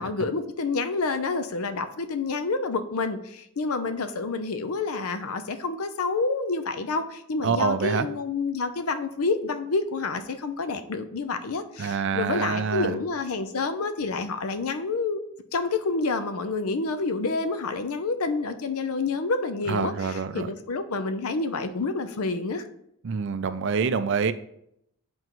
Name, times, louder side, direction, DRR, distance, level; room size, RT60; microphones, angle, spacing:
voice 1, 0.0-15.2 15.5-22.7, left 3 dB, 80° left, 10 dB, 0.6 m, -28 dB
voice 2, 7.4-8.1 11.8-13.0 19.7-20.5 23.0-24.3, right 5 dB, 55° right, 12 dB, 0.4 m, -26 dB
7.8 x 5.2 x 3.1 m, 0.74 s
head